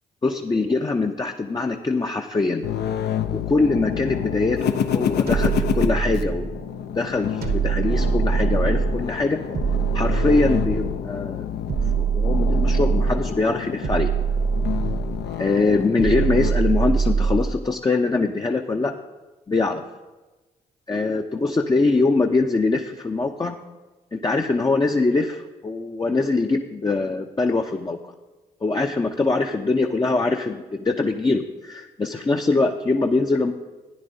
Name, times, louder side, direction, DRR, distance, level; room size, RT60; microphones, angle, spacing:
voice 1, 0.2-2.6 3.3-6.6 6.9-9.4 9.9-11.4 11.9-14.1 15.4-19.0 19.5-19.8 20.9-23.6 24.1-28.0 28.6-33.5, left 3 dB, 20° left, 3 dB, 0.6 m, -23 dB
sound 1, 2.6-16.5, left 9 dB, 65° left, 0.6 m, -28 dB
sound 2, 5.3-6.6 7.4-9.0 9.5-11.0 11.7-13.3 13.8-15.2 16.0-17.6, right 5 dB, 60° right, 1.0 m, -23 dB
14.5 x 9.9 x 2.7 m, 1.2 s
hypercardioid pair, 45°, 18 cm